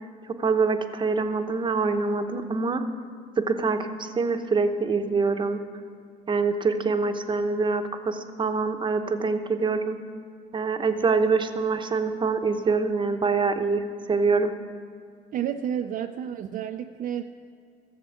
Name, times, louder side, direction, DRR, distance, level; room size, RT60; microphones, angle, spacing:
voice 1, 0.4-2.8 3.4-5.6 6.3-10.0 10.5-14.5, right 4 dB, 30° right, 7 dB, 0.9 m, -25 dB
voice 2, 15.3-17.2, right 9 dB, 55° right, 5 dB, 0.5 m, -30 dB
15.0 x 7.3 x 7.1 m, 2.4 s
cardioid pair, 110°, 17 cm